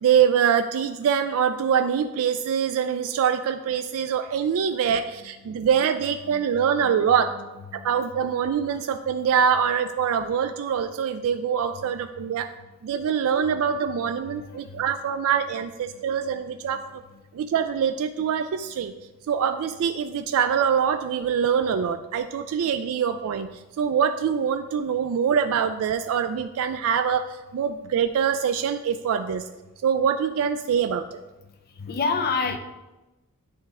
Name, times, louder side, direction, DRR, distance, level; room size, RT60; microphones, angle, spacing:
voice 1, 0.0-7.3 7.8-12.5 12.8-17.0 17.3-18.9 19.3-23.5 23.8-29.5 29.8-31.2, right 7 dB, 65° right, 8 dB, 0.3 m, -24 dB
voice 2, 5.2-5.6 6.2-7.1 7.7-7.9 9.2-9.4 11.7-12.4 13.5-13.6 13.9-14.9 15.9-16.0 16.3-16.4 16.7-16.8 31.5-32.6, left 4 dB, 45° left, 7 dB, 0.5 m, -32 dB
9.6 x 3.2 x 3.5 m, 1.1 s
head